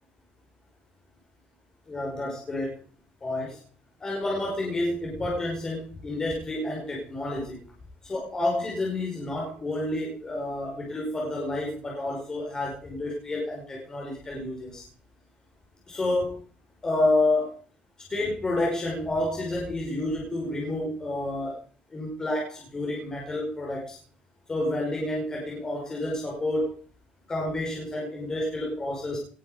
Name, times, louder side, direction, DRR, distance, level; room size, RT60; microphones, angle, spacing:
voice 1, 1.9-2.7 3.2-3.6 4.0-7.6 8.0-14.8 15.9-16.4 16.8-17.5 18.1-21.6 21.9-24.0 24.5-26.8 27.3-29.2, left 2 dB, 20° left, -3 dB, 5.4 m, -29 dB
19.0 x 11.0 x 5.1 m, 0.42 s
cardioid pair, 145°, 3 cm